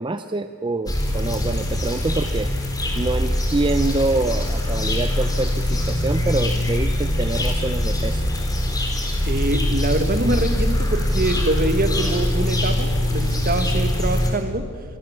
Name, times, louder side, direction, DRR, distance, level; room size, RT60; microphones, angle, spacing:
voice 1, 0.0-2.5 2.9-8.3, right 2 dB, 20° right, 10 dB, 0.6 m, -26 dB
sound 1, 0.9-14.3, left 1 dB, 20° left, 4.4 m, -22 dB
voice 2, 9.2-14.7, right 2 dB, 40° right, 8 dB, 1.7 m, -24 dB
26.5 x 24.0 x 7.5 m, 2.3 s
head